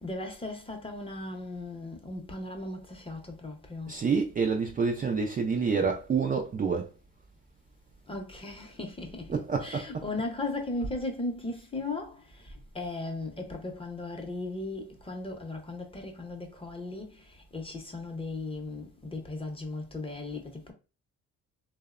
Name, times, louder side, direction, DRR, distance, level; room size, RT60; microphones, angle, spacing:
voice 1, 0.0-4.0 8.1-20.7, left 2 dB, 20° left, 0.7 m, -37 dB
voice 2, 3.9-6.9 9.3-10.0, right 5 dB, 30° right, 0.4 m, -28 dB
2.7 x 2.1 x 2.4 m
cardioid pair, 90°, 30 cm